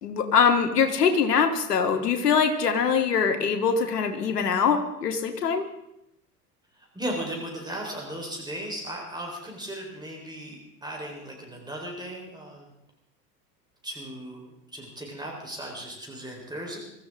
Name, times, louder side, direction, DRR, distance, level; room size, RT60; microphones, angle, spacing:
voice 1, 0.0-5.7, left 6 dB, 70° left, 6 dB, 2.0 m, -23 dB
voice 2, 6.7-12.7 13.8-16.8, right 1 dB, 10° right, -1 dB, 4.1 m, -36 dB
24.0 x 15.0 x 3.7 m, 0.83 s
figure-of-eight pair, 75°, 48 cm